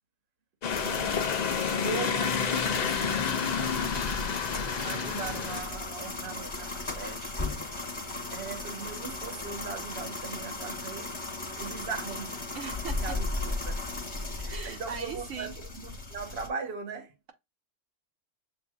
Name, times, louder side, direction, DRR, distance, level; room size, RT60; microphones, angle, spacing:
sound 1, 0.6-5.6, left 6 dB, 55° left, 0.4 m, -29 dB
sound 2, 0.7-16.5, left 2 dB, 25° left, 1.1 m, -36 dB
voice 1, 0.8-1.4 1.8-4.0 4.8-7.5 8.3-11.2 11.6-12.5 12.9-13.7 14.4-17.1, right 5 dB, 55° right, 1.2 m, -40 dB
voice 2, 12.5-13.0 14.5-15.5, right 5 dB, 75° right, 1.4 m, -39 dB
7.3 x 2.6 x 2.3 m
omnidirectional pair, 1.3 m